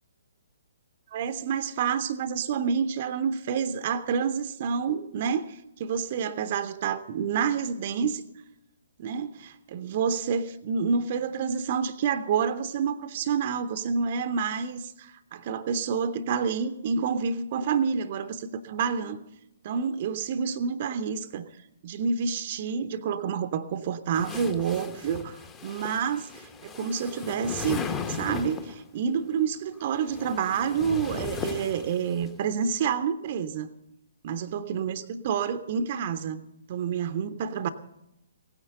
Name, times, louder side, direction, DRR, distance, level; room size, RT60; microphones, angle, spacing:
voice 1, 1.1-8.2 9.0-19.2 19.6-21.5 21.8-25.4 25.6-33.7 34.2-36.4 36.7-37.7, right 6 dB, 40° right, 11 dB, 0.7 m, -28 dB
sound 1, 24.1-28.8 29.8-32.3, left 6 dB, 15° left, 0.9 m, -36 dB
17.0 x 9.7 x 6.7 m, 0.87 s
figure-of-eight pair, 125°, 0 cm